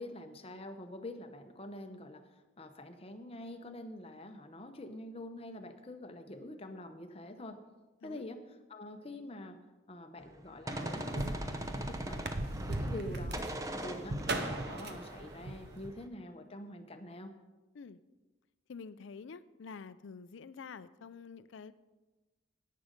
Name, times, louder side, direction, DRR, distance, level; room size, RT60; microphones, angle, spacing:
voice 1, 0.0-2.3 2.6-7.6 8.0-8.4 8.7-9.6 9.9-12.3 12.7-13.5 13.7-17.3, left 1 dB, 30° left, 7 dB, 0.8 m, -46 dB
Gunshot gunfire, 10.2-13.1 13.3-16.1, right 1 dB, 15° right, 0.6 m, -41 dB
sound effects - car door in multistorey car park keys, 10.7-15.9, right 2 dB, 55° right, 0.8 m, -38 dB
voice 2, 18.7-21.7, left 5 dB, 70° left, 16 dB, 0.4 m, -48 dB
10.5 x 9.3 x 5.1 m, 1.2 s
head